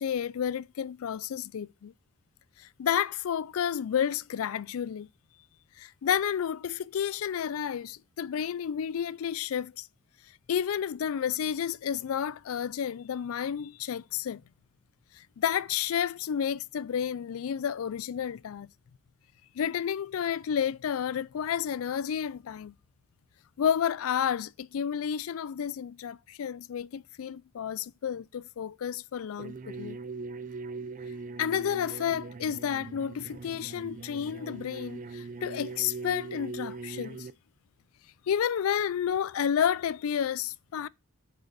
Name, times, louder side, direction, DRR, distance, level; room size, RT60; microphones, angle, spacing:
voice 1, 0.0-1.9 2.6-5.1 5.8-9.9 10.5-14.4 15.2-18.7 19.6-22.7 23.6-30.0 31.4-37.3 38.3-40.9, left 8 dB, 85° left, 0.4 m, -31 dB
sound 1, 29.4-37.3, right 4 dB, 40° right, 0.5 m, -41 dB
6.6 x 5.2 x 6.7 m
head